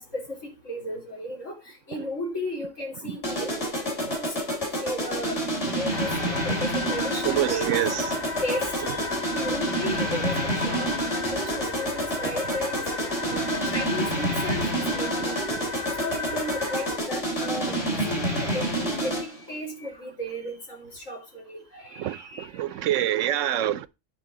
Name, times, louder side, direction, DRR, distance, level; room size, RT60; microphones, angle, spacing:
voice 1, 0.0-3.5 4.1-4.4 4.8-5.4 5.7-7.8 8.4-9.1 9.3-10.9 11.3-15.4 16.0-22.5 22.8-23.0 23.3-23.4, left 1 dB, 90° left, 3.7 m, -34 dB
sound 1, 3.2-19.4, equal, 65° left, 3.9 m, -28 dB
sound 2, 5.9-17.0, left 3 dB, 50° left, 1.8 m, -35 dB
voice 2, 7.2-8.3 13.2-13.5 15.5-15.6 22.0-23.9, right 12 dB, 80° right, 0.9 m, -27 dB
9.6 x 5.1 x 3.7 m
omnidirectional pair, 1.3 m